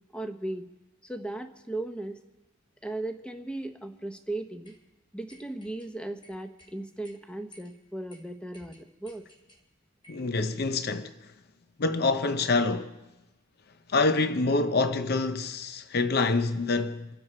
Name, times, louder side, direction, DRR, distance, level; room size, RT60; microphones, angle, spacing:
voice 1, 0.1-0.7 1.0-2.2 2.8-4.7 5.1-9.2, right 2 dB, 5° left, 0.9 m, -37 dB
sound 1, 4.6-4.8 5.3-5.9 6.2-6.7 7.0-7.2 7.5-7.7 8.1-8.2 8.5-9.6 10.0-10.3, left 1 dB, 25° left, 2.8 m, -55 dB
voice 2, 10.1-11.3 11.8-13.0 13.9-17.1, left 3 dB, 50° left, 0.6 m, -26 dB
29.0 x 9.9 x 4.4 m
head